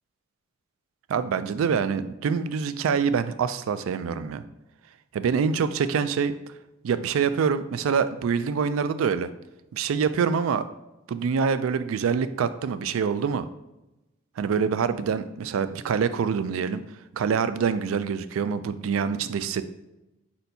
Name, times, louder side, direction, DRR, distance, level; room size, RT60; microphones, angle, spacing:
voice 1, 1.1-4.4 5.1-6.3 6.8-9.3 9.7-10.6 11.1-13.5 14.4-16.8 17.1-19.6, right 6 dB, 90° right, 13 dB, 0.3 m, -25 dB
4.5 x 4.2 x 2.7 m, 0.95 s
head